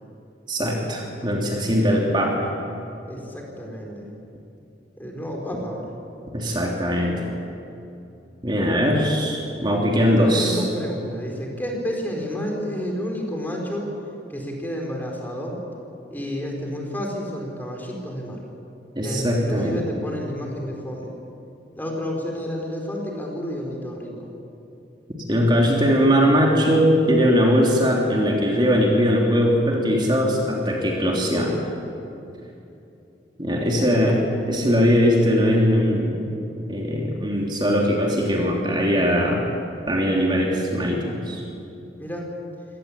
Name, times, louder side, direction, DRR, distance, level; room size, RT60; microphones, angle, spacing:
voice 1, 0.5-2.5 6.3-7.2 8.4-10.7 18.9-19.8 25.2-31.6 33.4-34.2 34.5-36.2 36.7-39.4 39.9-41.4, equal, 25° right, -1 dB, 3.2 m, -20 dB
voice 2, 3.0-4.1 5.0-5.9 10.1-13.9 14.3-15.6 16.1-18.4 19.0-21.2 21.8-24.3 33.9-34.1 42.0-42.3, equal, 10° left, 0 dB, 4.1 m, -30 dB
25.5 x 18.5 x 8.6 m, 2.8 s
head